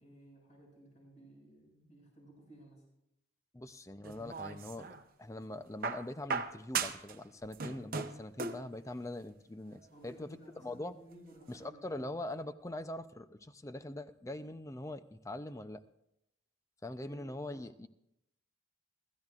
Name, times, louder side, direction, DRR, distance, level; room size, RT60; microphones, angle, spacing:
voice 1, 0.0-2.8 9.9-12.0 17.0-17.7, right 1 dB, 35° left, -2 dB, 7.0 m, -57 dB
voice 2, 3.5-4.9 5.2-11.0 11.5-15.8 16.8-17.9, left 1 dB, 15° left, 11 dB, 0.5 m, -43 dB
sound 1, 4.0-5.0 5.8-7.2 7.4-8.7 9.8-9.9, right 5 dB, 45° right, 0.8 m, -37 dB
26.5 x 14.0 x 2.5 m, 0.81 s
head